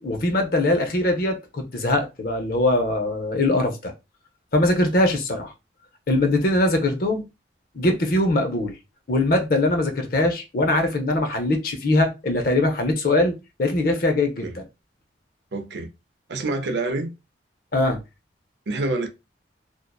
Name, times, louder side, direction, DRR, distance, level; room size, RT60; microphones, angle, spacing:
voice 1, 0.0-3.9 4.5-5.5 6.1-7.2 7.7-8.7 9.1-13.3 13.6-14.6 17.7-18.0, left 2 dB, 50° left, 0.6 m, -22 dB
voice 2, 15.5-15.9 16.3-17.1 18.7-19.1, right 2 dB, 70° right, 0.5 m, -27 dB
2.6 x 2.1 x 2.3 m
head